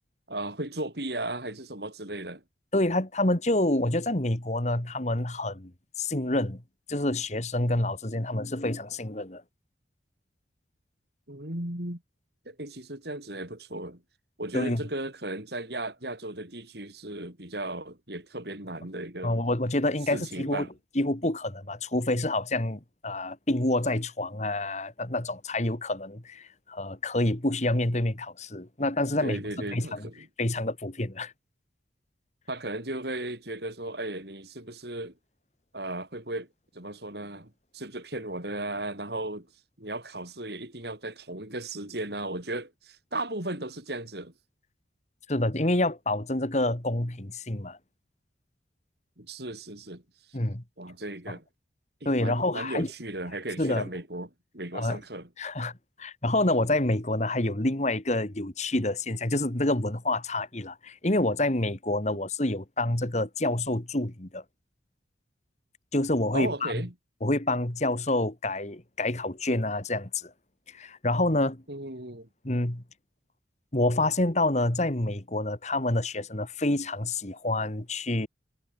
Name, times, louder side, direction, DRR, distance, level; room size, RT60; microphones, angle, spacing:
voice 1, 0.3-2.4 11.3-12.0 12.5-14.0 14.4-19.3 20.1-20.7 29.2-30.3 32.5-35.1 35.7-36.5 36.7-39.5 39.8-44.3 49.2-50.0 50.3-50.4 50.8-51.4 52.0-55.3 62.0-62.2 66.3-66.9 71.7-72.3, right 1 dB, 60° right, 5.2 m, -36 dB
voice 2, 2.7-5.7 6.0-6.6 6.9-9.4 14.5-14.8 19.2-20.7 21.0-29.4 29.7-30.0 30.4-31.3 45.3-47.8 50.3-50.6 52.1-52.9 53.6-53.9 54.7-55.0 55.4-55.7 56.0-64.4 65.9-66.9 67.2-70.3 70.7-71.6 72.4-72.8 73.7-78.3, left 1 dB, 40° left, 2.0 m, -27 dB
head